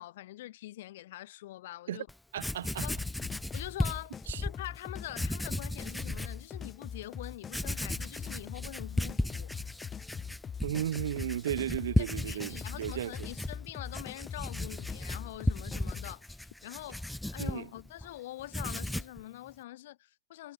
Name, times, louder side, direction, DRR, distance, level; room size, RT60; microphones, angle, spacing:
voice 1, 0.0-2.1 2.8-3.0 3.5-9.5 12.0-20.5, left 15 dB, 55° left, 5.3 m, -44 dB
Writing, 2.1-2.2 2.4-4.6 5.1-6.4 6.9-7.0 7.5-18.1 18.4-19.2, left 1 dB, 5° left, 1.3 m, -35 dB
voice 2, 2.3-2.9 4.3-4.4 10.6-13.3 17.4-17.7, right 11 dB, 60° right, 1.2 m, -35 dB
sound 1, 2.9-16.1, left 7 dB, 20° left, 7.4 m, -42 dB
figure-of-eight pair, 90°, 0 cm